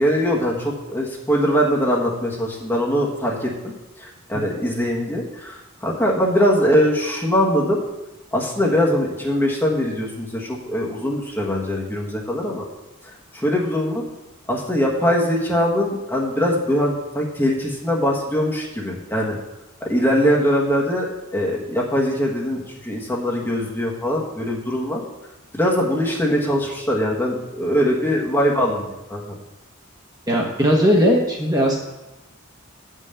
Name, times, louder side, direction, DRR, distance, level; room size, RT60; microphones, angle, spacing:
voice 1, 0.0-7.8 8.3-12.6 13.0-14.0 14.5-19.4 19.8-25.0 25.5-29.4, equal, 10° left, -2 dB, 1.4 m, -22 dB
voice 2, 30.3-31.8, equal, 20° right, -2 dB, 1.1 m, -18 dB
8.1 x 5.6 x 6.8 m, 1.0 s
head